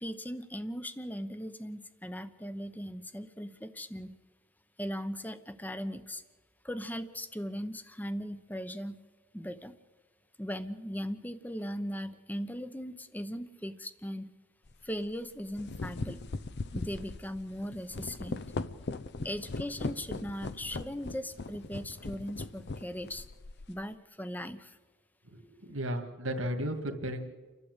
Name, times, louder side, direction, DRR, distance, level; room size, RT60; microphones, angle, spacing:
voice 1, 0.0-4.1 4.8-6.2 6.6-9.0 9.3-9.7 10.4-14.3 14.8-16.2 16.7-18.4 19.2-23.3 23.7-24.8, equal, 10° left, 12 dB, 0.8 m, -38 dB
sound 1, 14.7-14.8 15.4-23.8, left 3 dB, 55° left, 0.7 m, -39 dB
voice 2, 25.2-27.2, equal, 75° right, 4 dB, 2.2 m, -34 dB
30.0 x 12.0 x 8.1 m, 1.3 s
head